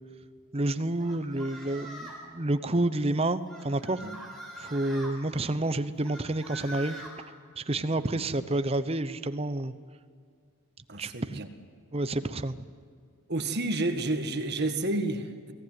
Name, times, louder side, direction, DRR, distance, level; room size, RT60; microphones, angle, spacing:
voice 1, 0.5-4.0 4.6-7.0 7.6-9.7 11.0-11.4 11.9-12.7, right 2 dB, 25° right, 12 dB, 0.8 m, -29 dB
sound 1, 1.0-2.3 3.5-5.1 6.0-7.1, right 1 dB, ahead, 4.7 m, -43 dB
voice 2, 10.9-11.5 13.3-15.5, right 2 dB, 45° right, 7 dB, 1.7 m, -30 dB
23.0 x 17.0 x 9.5 m, 2.1 s
head